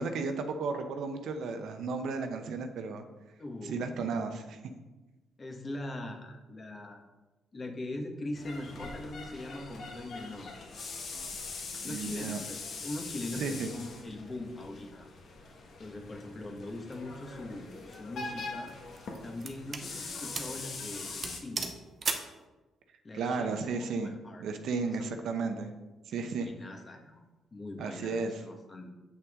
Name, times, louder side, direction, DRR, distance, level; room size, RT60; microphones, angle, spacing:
voice 1, 0.0-3.1 3.6-4.6 11.1-11.2 11.8-12.4 13.4-13.7 23.1-25.7 26.1-26.5 27.8-28.4, right 4 dB, 75° right, 7 dB, 0.8 m, -34 dB
voice 2, 3.4-4.0 5.4-7.0 7.5-10.5 11.8-15.1 15.8-18.7 19.2-21.7 23.0-23.5 24.0-24.4 24.9-25.0 26.3-27.2 27.5-28.9, left 2 dB, 30° left, 3 dB, 1.3 m, -41 dB
sound 1, 8.3-21.4, left 3 dB, 60° left, 1.4 m, -42 dB
sound 2, 17.6-18.0 18.7-19.9 20.3-20.6 20.9-21.0 21.2-22.4, right 4 dB, 45° right, 0.8 m, -36 dB
7.9 x 5.8 x 3.6 m, 1.1 s
cardioid pair, 90°, 0 cm